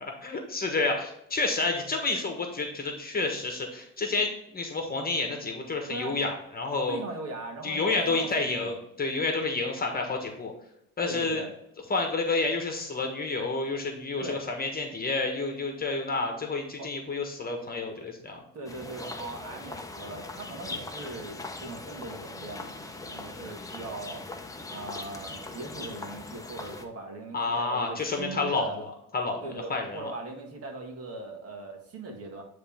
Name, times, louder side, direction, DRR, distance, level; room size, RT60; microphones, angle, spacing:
voice 1, 0.0-7.0 7.6-10.5 11.0-11.4 11.9-18.4 27.3-28.9 29.1-30.1, left 3 dB, 30° left, 3 dB, 1.3 m, -29 dB
voice 2, 6.9-8.8 11.0-11.5 14.2-14.4 16.7-16.9 18.5-24.2 24.7-28.8 29.4-32.4, right 2 dB, 50° right, 3 dB, 1.7 m, -40 dB
sound 1, 18.7-26.9, left 3 dB, 10° left, 0.7 m, -40 dB
9.5 x 3.3 x 3.5 m, 0.80 s
cardioid pair, 100°, 32 cm